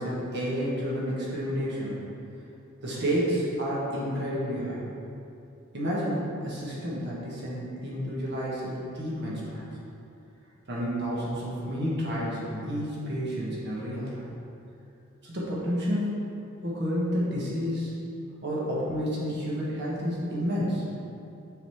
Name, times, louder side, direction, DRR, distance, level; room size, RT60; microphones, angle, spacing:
voice 1, 0.0-2.0 2.8-4.8 5.7-9.7 10.7-14.2 15.2-16.3 16.6-17.9 18.4-20.8, equal, 55° right, -6 dB, 1.4 m, -30 dB
7.1 x 4.1 x 4.8 m, 2.7 s
head